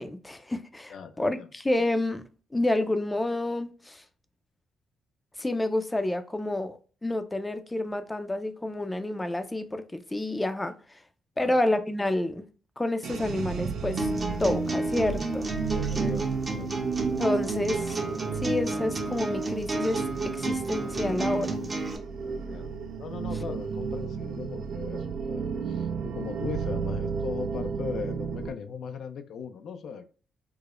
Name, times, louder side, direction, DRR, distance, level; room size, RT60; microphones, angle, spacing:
voice 1, 0.0-2.2 2.5-4.0 5.4-10.7 11.4-12.4 12.8-14.1 14.4-15.5 16.0-16.1 17.2-18.0 18.4-20.0 20.4-21.6, left 1 dB, 15° left, 0.5 m, -29 dB
voice 2, 0.9-1.5 11.4-11.6 15.7-16.8 21.9-22.0 22.2-30.1, left 6 dB, 65° left, 0.4 m, -39 dB
sound 1, 13.0-28.5, right 6 dB, 70° right, 0.6 m, -33 dB
sound 2, 14.0-22.0, right 2 dB, 30° right, 0.7 m, -31 dB
4.7 x 2.0 x 2.4 m
cardioid pair, 90°, 0 cm